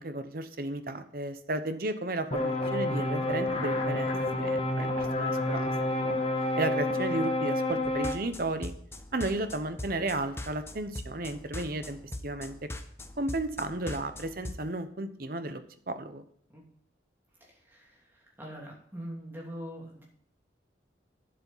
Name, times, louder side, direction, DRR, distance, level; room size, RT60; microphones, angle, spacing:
voice 1, 0.0-5.7 6.0-6.1 6.6-8.7 9.1-12.0 12.2-12.7 13.2-15.6 15.9-16.2, right 2 dB, 50° right, 10 dB, 0.9 m, -33 dB
sound 1, 2.3-8.1, left 1 dB, 30° left, 1.3 m, -29 dB
sound 2, 7.8-14.6, left 1 dB, 15° left, 0.7 m, -41 dB
voice 2, 17.4-20.0, equal, 10° right, -3 dB, 2.9 m, -43 dB
9.8 x 7.8 x 5.7 m, 0.63 s
head